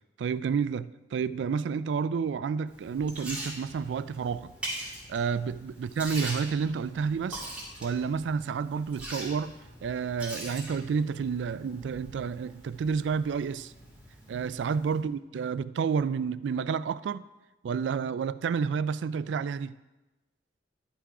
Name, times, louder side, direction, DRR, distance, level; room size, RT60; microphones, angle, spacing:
voice 1, 0.2-4.5 5.1-7.5 7.8-9.5 9.8-13.7 14.3-17.2 17.6-19.7, right 6 dB, 90° right, 0.3 m, -30 dB
Liquid, 2.7-15.0, right 1 dB, 5° right, 2.6 m, -43 dB
11.5 x 5.8 x 4.8 m
head